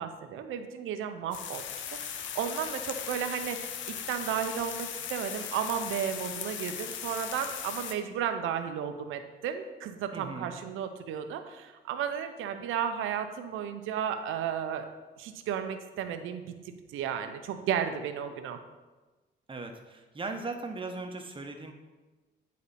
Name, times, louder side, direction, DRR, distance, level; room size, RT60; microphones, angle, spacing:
voice 1, 0.0-14.9 15.2-16.5 16.9-18.6, right 8 dB, 90° right, 8 dB, 0.7 m, -34 dB
sound 1, 1.3-7.9, left 9 dB, 75° left, 0.7 m, -38 dB
voice 2, 10.1-10.5 19.5-21.7, right 3 dB, 25° right, 4 dB, 1.0 m, -38 dB
9.7 x 4.2 x 4.2 m, 1.2 s
cardioid pair, 90°, 20 cm